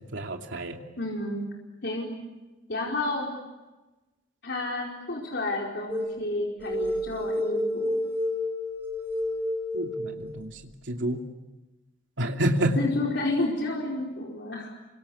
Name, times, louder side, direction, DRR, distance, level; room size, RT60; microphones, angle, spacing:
voice 1, 0.1-0.8 9.7-10.6 10.9-11.2 12.2-12.8, right 1 dB, 75° right, 3 dB, 2.7 m, -28 dB
voice 2, 1.0-1.5 1.8-2.1 2.7-3.3 4.4-8.0 12.7-14.7, left 2 dB, 60° left, -2 dB, 4.7 m, -30 dB
sound 1, 5.9-6.2 6.6-10.4, left 1 dB, 10° right, 5.9 m, -30 dB
28.0 x 25.0 x 8.5 m, 1.1 s
head